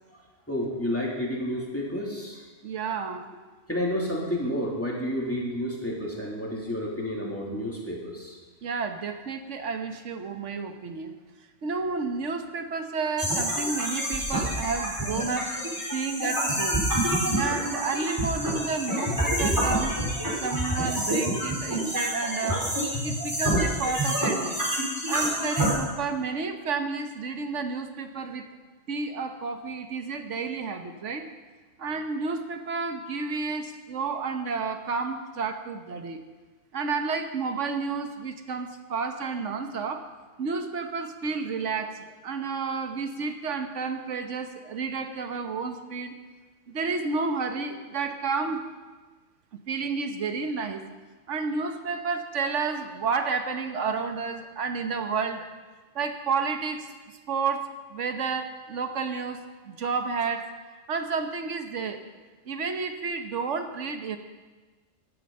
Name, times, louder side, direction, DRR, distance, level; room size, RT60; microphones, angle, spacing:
voice 1, 0.5-2.4 3.7-8.3, equal, 10° left, -3 dB, 3.0 m, -30 dB
voice 2, 2.6-3.3 8.6-11.1 11.6-15.5 15.9-16.8 17.4-20.0 20.4-22.7 23.0-24.6 25.1-28.5 28.9-31.3 31.8-36.2 36.7-40.1 40.4-46.1 46.7-48.6 49.5-50.8 51.3-55.5 55.9-56.9 57.3-60.5 60.9-62.1 62.5-64.2, right 4 dB, 70° right, 7 dB, 1.5 m, -31 dB
sound 1, 13.2-25.7, right 1 dB, 15° right, 4.2 m, -27 dB
16.0 x 11.5 x 5.5 m, 1.3 s
omnidirectional pair, 1.3 m